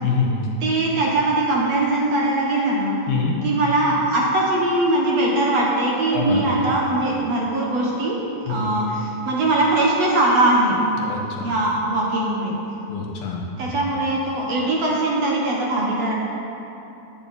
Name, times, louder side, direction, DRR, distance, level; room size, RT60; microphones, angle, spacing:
voice 1, 0.0-0.5 3.1-3.4 6.1-6.7 8.5-8.7 11.0-11.5 12.9-13.7, left 4 dB, 80° left, -1 dB, 3.4 m, -25 dB
voice 2, 0.6-3.0 3.4-8.2 8.5-10.8 11.4-12.6 13.6-16.1, right 2 dB, 60° right, -3 dB, 2.0 m, -21 dB
16.5 x 10.5 x 4.3 m, 2.9 s
omnidirectional pair, 4.2 m